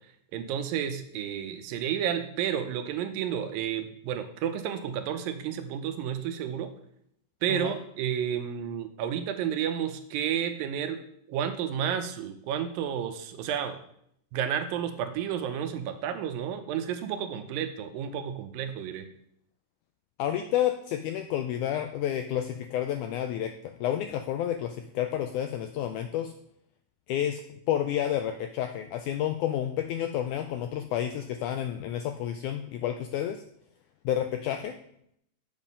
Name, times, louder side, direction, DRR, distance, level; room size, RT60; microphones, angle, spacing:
voice 1, 0.3-6.7 7.4-11.0 11.3-13.8 14.3-19.1, right 9 dB, 80° right, 8 dB, 2.5 m, -31 dB
voice 2, 20.2-26.3 27.1-27.4 27.7-33.4 34.1-34.8, left 11 dB, 90° left, 7 dB, 1.7 m, -30 dB
7.3 x 7.2 x 5.4 m, 0.70 s
omnidirectional pair, 4.1 m